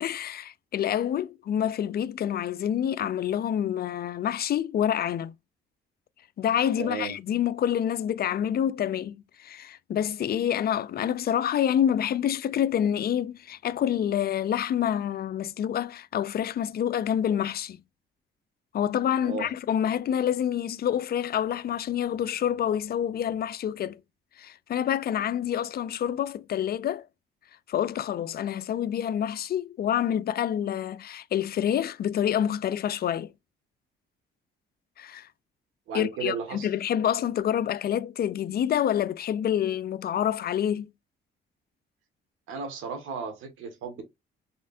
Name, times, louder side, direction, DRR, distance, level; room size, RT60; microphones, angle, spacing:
voice 1, 0.0-5.3 6.4-17.8 18.7-24.0 24.4-27.0 27.7-33.3 35.0-35.3 35.9-40.9, left 10 dB, 50° left, 0.4 m, -27 dB
voice 2, 6.8-7.2 19.2-19.5 35.9-36.7 42.5-44.0, right 5 dB, 90° right, 1.6 m, -34 dB
4.3 x 3.6 x 2.6 m
cardioid pair, 90°, 20 cm